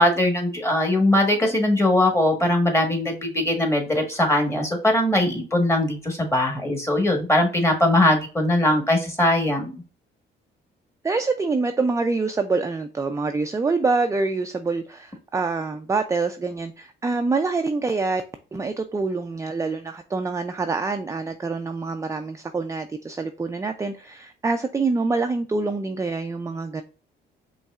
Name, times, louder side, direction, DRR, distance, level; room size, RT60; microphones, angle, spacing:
voice 1, 0.0-9.8, left 1 dB, 15° left, 1.4 m, -21 dB
voice 2, 11.0-18.2 18.5-26.8, right 3 dB, 15° right, 0.4 m, -26 dB
5.3 x 3.2 x 2.4 m
cardioid pair, 90°, 20 cm